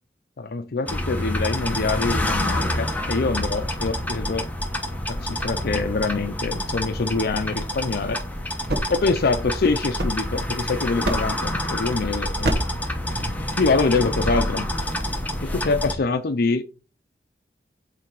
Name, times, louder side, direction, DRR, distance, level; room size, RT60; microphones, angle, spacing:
voice 1, 0.4-4.5 5.1-8.2 8.9-12.6 13.6-14.7 15.4-16.6, left 3 dB, 60° left, 0.6 m, -25 dB
sound 1, 0.9-16.0, left 1 dB, 10° left, 1.0 m, -27 dB
sound 2, 8.7-10.6 11.0-11.5 12.4-12.9, right 1 dB, 65° right, 1.3 m, -27 dB
8.7 x 3.4 x 4.6 m
head